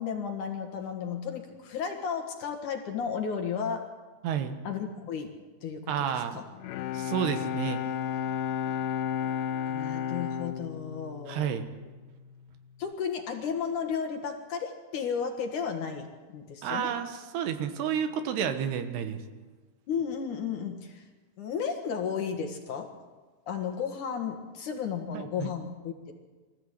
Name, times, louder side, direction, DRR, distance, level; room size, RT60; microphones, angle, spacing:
voice 1, 0.0-3.9 4.6-5.3 5.6-5.9 6.3-6.4 9.7-11.5 12.8-16.1 16.3-16.9 19.9-21.0 21.4-22.9 23.5-26.1, left 6 dB, 60° left, 5 dB, 2.6 m, -33 dB
voice 2, 4.2-4.6 5.9-6.4 6.9-7.8 11.3-11.6 16.6-19.2 25.1-25.5, right 8 dB, 80° right, 8 dB, 3.4 m, -30 dB
Bowed string instrument, 6.5-12.2, left 9 dB, 75° left, 2.7 m, -33 dB
24.5 x 15.0 x 8.3 m, 1.3 s
omnidirectional pair, 4.7 m